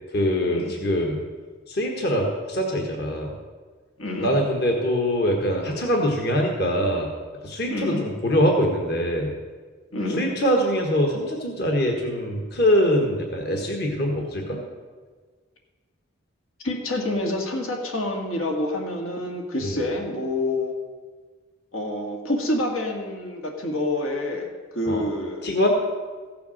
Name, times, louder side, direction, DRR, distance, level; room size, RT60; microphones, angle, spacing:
voice 1, 0.1-1.2 1.7-3.3 4.2-7.1 7.4-9.3 10.2-14.6 19.6-19.8 24.9-25.0 25.4-25.8, equal, 50° left, 1 dB, 1.5 m, -23 dB
voice 2, 4.0-4.3 7.7-8.0 9.9-10.2 16.6-20.7 21.7-24.5 24.7-25.5, left 1 dB, 85° left, 1 dB, 2.0 m, -27 dB
15.0 x 6.9 x 6.5 m, 1.5 s
head